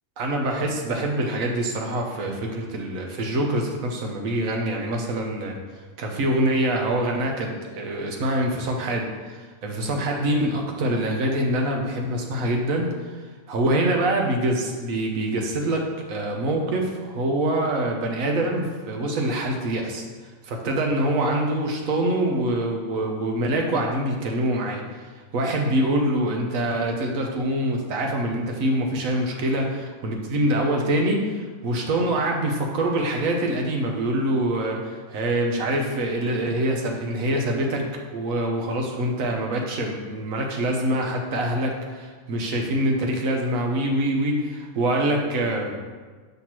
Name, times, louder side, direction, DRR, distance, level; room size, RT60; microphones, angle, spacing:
voice 1, 0.2-5.5 6.0-12.9 13.5-20.0 20.4-24.8 25.3-45.7, right 1 dB, 75° right, 1 dB, 1.2 m, -25 dB
5.8 x 5.8 x 3.0 m, 1.4 s
omnidirectional pair, 1.5 m